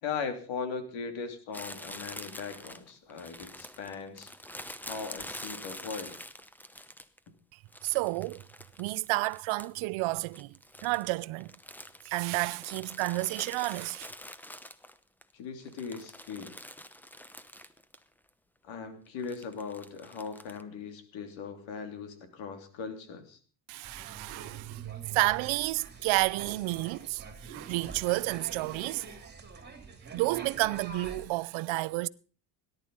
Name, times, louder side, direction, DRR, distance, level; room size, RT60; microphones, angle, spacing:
voice 1, 0.0-4.3 4.8-6.2 15.3-16.5 18.6-23.4, left 5 dB, 70° left, 3.3 m, -39 dB
Crumpling crinkling, 1.5-7.3 7.7-9.9 10.2-15.2 15.6-18.0 18.3-18.4 19.2-20.6, left 1 dB, 5° left, 0.8 m, -46 dB
voice 2, 7.8-8.4 8.8-10.5 10.8-11.5 12.1-14.1 23.7-29.2 30.1-32.1, right 21 dB, 75° right, 0.8 m, -31 dB
sound 1, 23.8-31.3, right 4 dB, 20° right, 3.0 m, -46 dB
18.0 x 11.5 x 5.4 m
cardioid pair, 125°, 48 cm